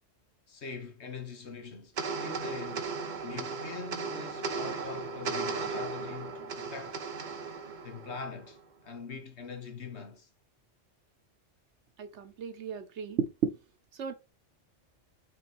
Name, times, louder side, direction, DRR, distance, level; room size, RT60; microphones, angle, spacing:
voice 1, 0.5-1.9 2.2-2.9 3.2-7.0 7.8-10.3, left 5 dB, 65° left, 1.5 m, -43 dB
fluorescent lights shutting down, 2.0-8.6, right 4 dB, 45° right, 0.8 m, -36 dB
voice 2, 12.0-13.5 14.0-14.1, right 7 dB, 70° right, 1.1 m, -33 dB
6.0 x 3.9 x 4.3 m
omnidirectional pair, 1.2 m